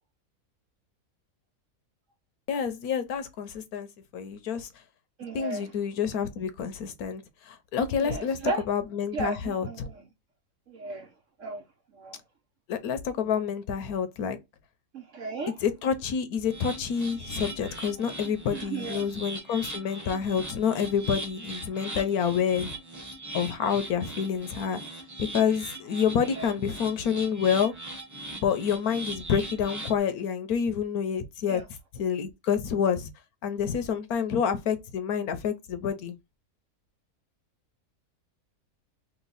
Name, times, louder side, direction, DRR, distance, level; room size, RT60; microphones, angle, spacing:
voice 1, 2.5-4.7 5.3-8.4 8.7-9.9 12.7-14.4 15.6-22.8 23.3-24.8 25.2-27.7 28.3-31.6 31.9-33.1 33.4-36.1, left 7 dB, 75° left, 1.1 m, -28 dB
voice 2, 5.2-5.7 8.0-8.6 9.1-10.1 10.7-11.1 11.4-11.6 11.9-12.2 14.9-15.6 18.5-19.0 26.2-26.5 31.4-31.6, right 3 dB, 60° right, 1.0 m, -35 dB
sound 1, 16.4-30.0, right 2 dB, 15° right, 0.9 m, -40 dB
3.1 x 3.0 x 3.8 m
omnidirectional pair, 1.7 m